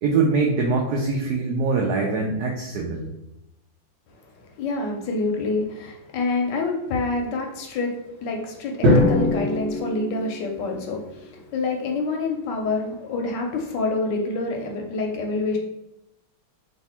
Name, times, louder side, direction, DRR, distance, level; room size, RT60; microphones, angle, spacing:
voice 1, 0.0-3.1, right 4 dB, 75° right, 0 dB, 0.9 m, -23 dB
voice 2, 4.6-15.6, left 3 dB, 70° left, 2 dB, 1.1 m, -27 dB
Drum, 8.8-11.0, left 1 dB, 55° right, 1.3 m, -21 dB
3.2 x 2.6 x 4.2 m, 0.89 s
omnidirectional pair, 2.2 m